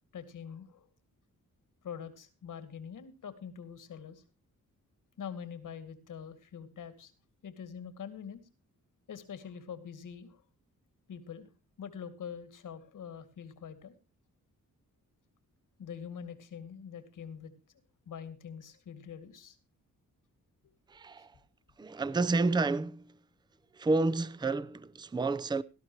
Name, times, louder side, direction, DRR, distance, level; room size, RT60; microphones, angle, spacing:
voice 1, 0.1-0.9 1.8-4.2 5.2-7.1 7.4-8.4 9.1-10.4 11.1-11.5 11.8-13.9 15.8-17.5 18.1-19.6 20.6-20.7, left 7 dB, 75° left, 2.2 m, -44 dB
voice 2, 20.9-21.3 21.8-23.2 23.7-25.6, right 3 dB, 15° right, 0.5 m, -30 dB
18.5 x 13.0 x 3.0 m
cardioid pair, 100°, 32 cm